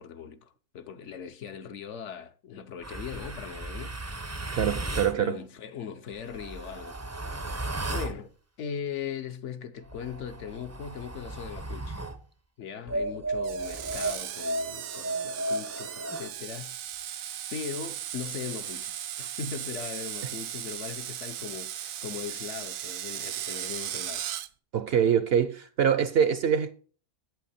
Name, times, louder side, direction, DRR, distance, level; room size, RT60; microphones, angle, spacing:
voice 1, 0.0-4.0 5.1-7.0 7.5-8.3 8.6-12.0 12.6-16.7 17.0-24.2, left 7 dB, 65° left, 1.0 m, -39 dB
sound 1, 2.8-5.2 6.1-8.2 9.8-12.2 12.9-16.3, right 2 dB, 20° right, 0.4 m, -34 dB
voice 2, 4.5-5.4 24.7-26.7, right 8 dB, 60° right, 0.7 m, -24 dB
Screech, 13.4-24.5, right 11 dB, 80° right, 1.0 m, -37 dB
8.5 x 8.1 x 4.2 m
omnidirectional pair, 1.4 m